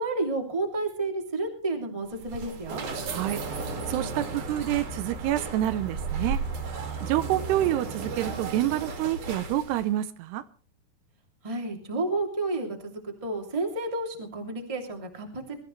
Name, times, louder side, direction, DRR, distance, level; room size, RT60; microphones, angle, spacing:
voice 1, 0.0-2.8 11.4-15.6, right 2 dB, 10° right, 2.0 m, -31 dB
sound 1, 2.1-9.9, right 4 dB, 55° right, 3.5 m, -34 dB
voice 2, 3.1-3.4 3.9-6.4 7.0-10.4, right 13 dB, 80° right, 2.9 m, -27 dB
22.5 x 14.0 x 3.2 m
omnidirectional pair, 4.7 m